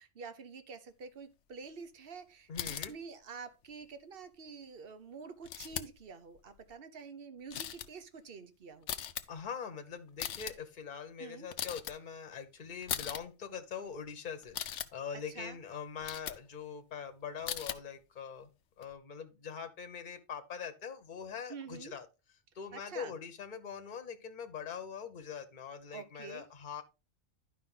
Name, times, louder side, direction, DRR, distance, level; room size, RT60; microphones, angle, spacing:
voice 1, 0.0-8.9 11.2-11.5 15.3-15.6 21.5-22.0 22.7-23.1 25.9-26.4, right 5 dB, 50° right, 1.1 m, -48 dB
sound 1, 2.5-2.9 5.4-6.0 6.4-6.7 7.5-7.9 8.8-9.3 10.1-10.5 11.5-11.9 12.8-13.2 14.4-14.9 16.0-16.4 17.4-17.8 18.8-18.9, left 10 dB, 70° left, 0.9 m, -38 dB
voice 2, 2.5-2.9 9.3-18.5 18.8-22.1 22.5-26.8, left 7 dB, 40° left, 1.1 m, -43 dB
11.0 x 5.2 x 3.8 m
omnidirectional pair, 1.3 m